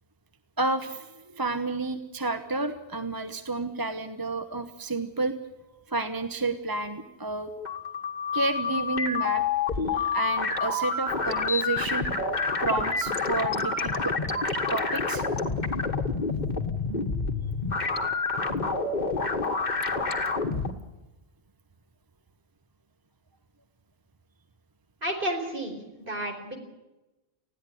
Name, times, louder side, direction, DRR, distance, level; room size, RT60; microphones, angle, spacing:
voice 1, 0.6-5.4 5.9-7.5 8.3-9.4 9.9-12.0 12.6-14.2 14.4-15.2, right 3 dB, 20° right, 8 dB, 1.1 m, -30 dB
sound 1, 7.5-20.7, left 4 dB, 40° left, 1.6 m, -28 dB
voice 2, 25.0-26.6, right 1 dB, 50° right, 3 dB, 4.9 m, -32 dB
20.0 x 15.0 x 9.9 m, 1.0 s
omnidirectional pair, 1.2 m